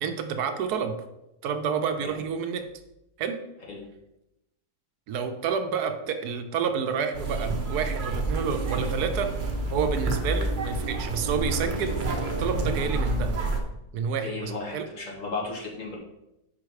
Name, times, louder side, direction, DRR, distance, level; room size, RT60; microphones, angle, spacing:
voice 1, 0.0-0.9 1.4-2.6 3.2-3.4 5.1-9.3 9.7-13.3 13.9-14.9, right 6 dB, 75° right, 7 dB, 1.1 m, -29 dB
sound 1, 7.1-13.6, right 2 dB, 40° right, 0.8 m, -28 dB
voice 2, 14.2-16.0, left 3 dB, 50° left, -3 dB, 1.8 m, -35 dB
5.6 x 4.9 x 4.7 m, 0.89 s
omnidirectional pair, 1.7 m